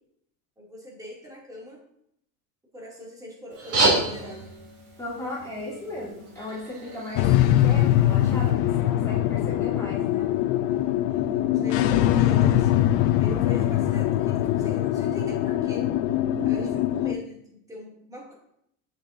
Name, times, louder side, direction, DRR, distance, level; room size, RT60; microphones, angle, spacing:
voice 1, 0.6-1.8 2.7-4.5 11.3-15.9 16.4-18.3, left 1 dB, 10° right, -4 dB, 2.4 m, -41 dB
sound 1, 3.5-8.5, right 2 dB, 35° right, 2.7 m, -30 dB
voice 2, 5.0-7.3 7.6-10.3, left 1 dB, 10° left, -9 dB, 2.9 m, -36 dB
sound 2, 7.2-17.1, left 12 dB, 55° left, 0.5 m, -22 dB
7.9 x 7.1 x 2.6 m, 0.73 s
supercardioid pair, 140°, 42 cm